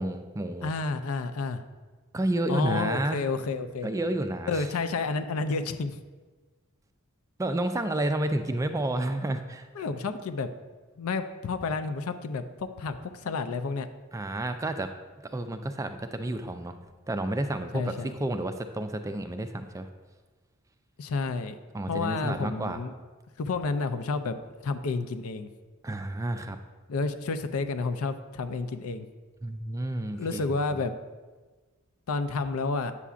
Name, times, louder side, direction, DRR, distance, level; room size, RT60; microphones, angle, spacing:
voice 1, 0.0-0.7 2.1-3.2 3.8-4.7 7.4-9.7 14.1-14.9 15.3-16.8 17.1-19.9 21.7-22.8 25.8-26.6 29.4-30.4 30.7-30.8, right 1 dB, 15° right, 8 dB, 0.3 m, -30 dB
voice 2, 0.6-1.6 2.5-3.9 4.5-6.0 9.8-10.5 11.0-13.0 13.2-13.9 17.7-18.2 21.0-21.6 21.9-22.9 23.4-24.3 24.6-25.5 26.9-29.1 30.1-30.9 32.1-32.9, left 4 dB, 75° left, 9 dB, 0.5 m, -30 dB
8.3 x 6.8 x 2.4 m, 1.3 s
head